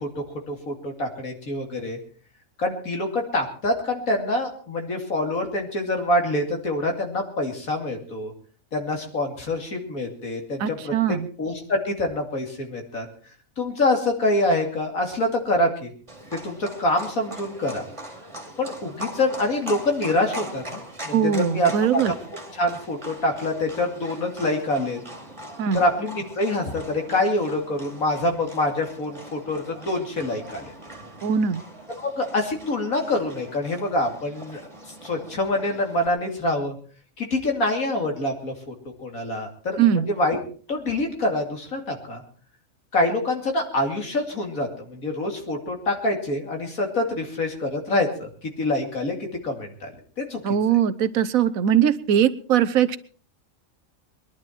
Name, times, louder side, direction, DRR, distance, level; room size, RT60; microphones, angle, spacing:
voice 1, 0.0-2.0 2.6-8.3 8.7-13.1 13.6-15.9 16.3-17.8 18.6-22.0 22.5-25.0 25.7-30.7 31.9-34.6 35.0-36.8 37.2-38.7 39.0-40.4 40.7-42.2 42.9-49.9 50.2-50.5, left 1 dB, 90° left, 3 dB, 3.1 m, -26 dB
voice 2, 10.6-11.3 21.1-22.1 25.6-25.8 31.2-31.6 39.8-40.1 50.4-53.0, right 8 dB, 85° right, 13 dB, 1.3 m, -21 dB
Livestock farm animals working animals, 16.1-36.1, right 1 dB, 20° right, 2.6 m, -41 dB
22.0 x 11.5 x 4.5 m, 0.42 s
omnidirectional pair, 1.4 m